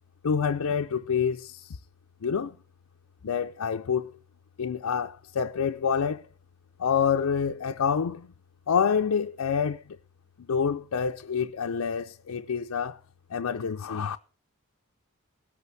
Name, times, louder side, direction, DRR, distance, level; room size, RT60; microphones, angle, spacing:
voice 1, 0.2-1.8 2.2-2.6 3.2-4.1 4.6-6.3 6.8-8.3 8.7-10.0 10.4-13.0 13.3-14.2, left 6 dB, 90° left, 0.5 m, -27 dB
18.5 x 8.3 x 3.3 m
head